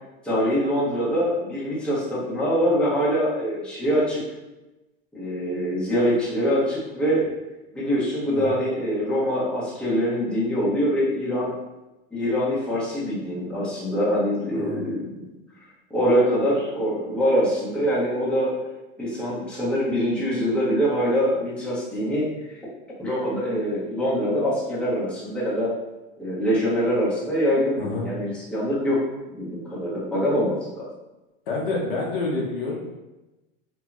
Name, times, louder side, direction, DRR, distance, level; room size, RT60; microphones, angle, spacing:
voice 1, 0.2-4.2 5.1-7.2 7.7-11.5 12.1-15.3 15.9-18.5 19.0-22.5 23.0-25.7 26.2-29.0 29.4-30.9, equal, 5° left, -9 dB, 1.0 m, -24 dB
voice 2, 14.5-14.8 27.8-28.1 31.5-32.7, left 3 dB, 70° left, -3 dB, 0.9 m, -28 dB
2.9 x 2.8 x 2.4 m, 1.0 s
hypercardioid pair, 115°, 29 cm